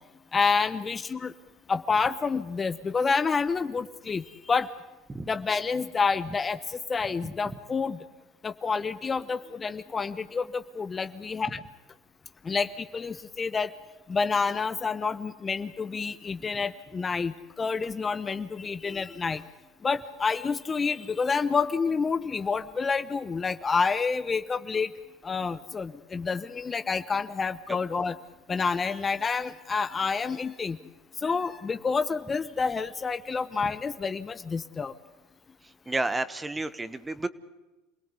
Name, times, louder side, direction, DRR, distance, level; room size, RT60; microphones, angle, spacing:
voice 1, 0.3-1.3 1.7-4.7 5.3-8.0 8.4-11.6 12.4-13.7 14.1-19.4 19.8-24.9 25.2-28.2 28.5-30.8 31.2-34.9, left 5 dB, 25° left, 12 dB, 1.0 m, -28 dB
voice 2, 35.9-37.3, right 2 dB, 15° right, 14 dB, 1.4 m, -30 dB
28.0 x 18.0 x 8.3 m, 1.1 s
supercardioid pair, 100°, 0 cm